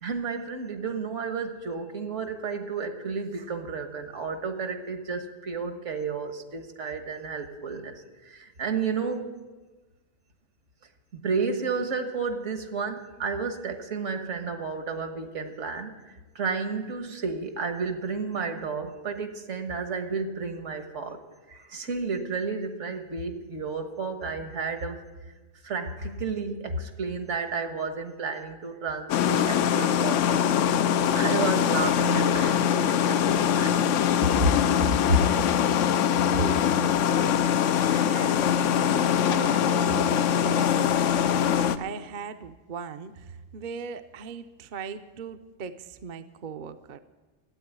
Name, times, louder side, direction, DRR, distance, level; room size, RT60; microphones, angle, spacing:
voice 1, 0.0-9.3 11.1-21.2 21.5-25.0 25.6-30.7 31.1-33.9 34.2-34.5 35.1-35.2, right 4 dB, 75° right, 8 dB, 1.7 m, -31 dB
sound 1, 29.1-41.8, left 9 dB, 80° left, 0.9 m, -23 dB
voice 2, 36.2-47.0, right 5 dB, 50° right, 8 dB, 0.7 m, -38 dB
12.5 x 8.7 x 9.9 m, 1.2 s
omnidirectional pair, 1.3 m